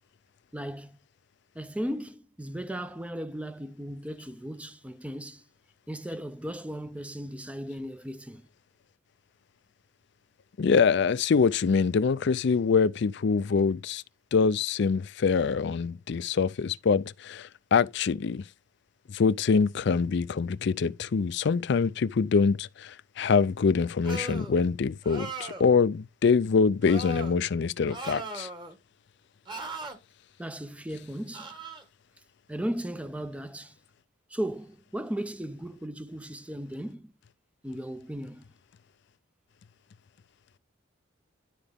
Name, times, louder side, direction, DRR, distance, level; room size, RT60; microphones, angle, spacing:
voice 1, 0.5-1.0 1.5-5.4 5.9-8.5 30.4-31.6 32.5-33.8 34.3-37.1 37.6-38.4, equal, 5° right, 0.5 m, -36 dB
voice 2, 10.6-14.0 14.3-18.4 19.1-28.5, left 5 dB, 60° left, 0.4 m, -24 dB
sound 1, 24.0-24.5 25.0-25.7 26.8-27.3 27.9-28.7 29.5-30.0 31.3-31.8, right 2 dB, 25° right, 1.6 m, -38 dB
12.0 x 4.9 x 3.5 m
head